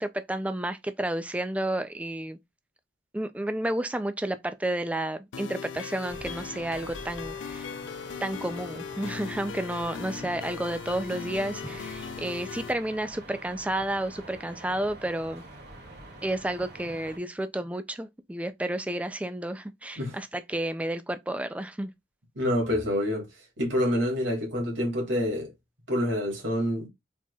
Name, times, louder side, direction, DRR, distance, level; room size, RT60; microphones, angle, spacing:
voice 1, 0.0-2.4 3.1-7.7 8.2-15.4 16.2-21.9, right 1 dB, 5° right, 0.3 m, -31 dB
sound 1, 5.3-12.7, left 6 dB, 80° left, 0.4 m, -39 dB
sound 2, 6.1-17.2, right 2 dB, 55° right, 2.1 m, -46 dB
voice 2, 22.4-23.3 23.6-25.5 25.9-26.9, left 1 dB, 80° right, 2.3 m, -27 dB
4.5 x 4.1 x 2.3 m
head